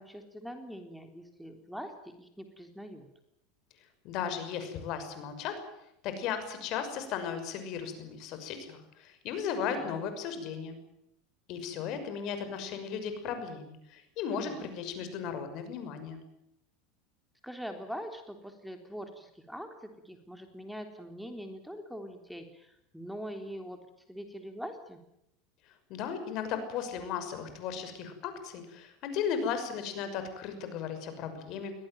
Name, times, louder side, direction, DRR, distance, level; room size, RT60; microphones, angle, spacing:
voice 1, 0.0-3.1 9.6-9.9 14.3-14.7 17.4-23.8 24.1-25.0, equal, ahead, 6 dB, 3.6 m, -43 dB
voice 2, 4.0-5.6 6.0-10.8 11.5-16.2 25.9-31.7, left 7 dB, 55° left, 9 dB, 6.1 m, -36 dB
22.5 x 18.0 x 9.2 m, 0.80 s
hypercardioid pair, 90°, 0 cm